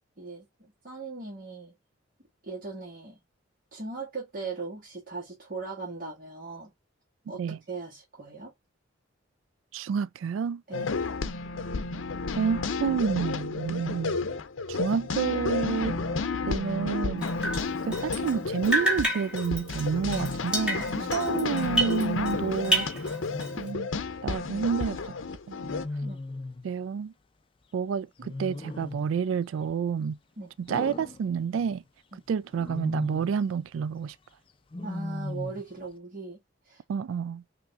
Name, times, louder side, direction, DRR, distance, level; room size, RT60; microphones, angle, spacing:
voice 1, 0.2-1.7 2.4-3.2 3.7-6.7 7.3-8.5 10.7-10.9 21.0-21.2 26.0-26.2 30.4-30.5 32.1-32.2 34.8-36.4 36.7-36.8, right 4 dB, 50° right, 1.8 m, -39 dB
voice 2, 9.7-10.6 12.4-14.3 14.7-16.0 16.5-17.3 17.9-23.2 23.6-23.9 24.2-25.1 25.5-25.6 26.6-27.1 27.7-30.2 30.6-31.8 32.3-34.2 36.9-37.4, right 6 dB, 85° right, 0.3 m, -29 dB
sound 1, 10.7-25.9, left 4 dB, 85° left, 0.6 m, -31 dB
Drip, 17.2-18.4 18.6-22.4 22.6-23.7, right 1 dB, 5° right, 1.9 m, -29 dB
Wild animals, 18.3-18.7 19.9-20.6 22.9-23.9 25.6-26.7 28.2-29.1 30.7-31.8 32.5-33.4 34.7-35.7, left 2 dB, 25° left, 0.4 m, -38 dB
6.0 x 3.0 x 2.4 m
head